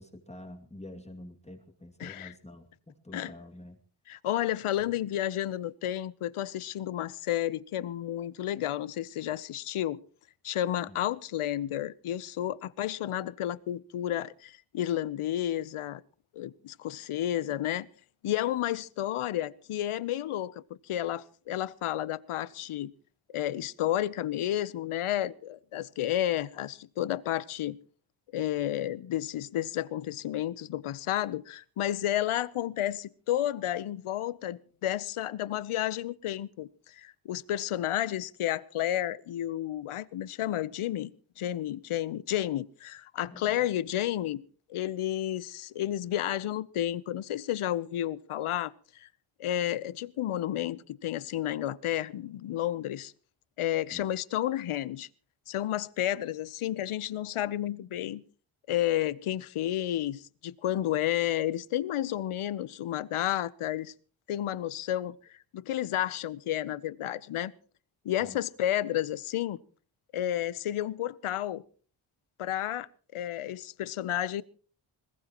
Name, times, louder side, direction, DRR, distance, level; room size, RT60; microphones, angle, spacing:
voice 1, 0.0-3.8 4.8-4.9 10.9-11.1 43.3-43.6 53.9-54.1 65.9-66.1 68.2-68.4, left 1 dB, 15° left, 2.4 m, -48 dB
voice 2, 2.0-2.3 3.1-3.3 4.1-10.0 10.4-16.0 16.3-17.9 18.2-22.9 23.3-27.8 28.3-41.1 41.4-44.4 44.7-49.1 49.4-53.1 53.6-55.1 55.5-58.2 58.7-63.9 64.3-67.5 68.0-69.6 70.1-71.6 72.4-74.4, left 12 dB, 75° left, 0.9 m, -31 dB
21.0 x 20.5 x 3.0 m
cardioid pair, 70°, 50 cm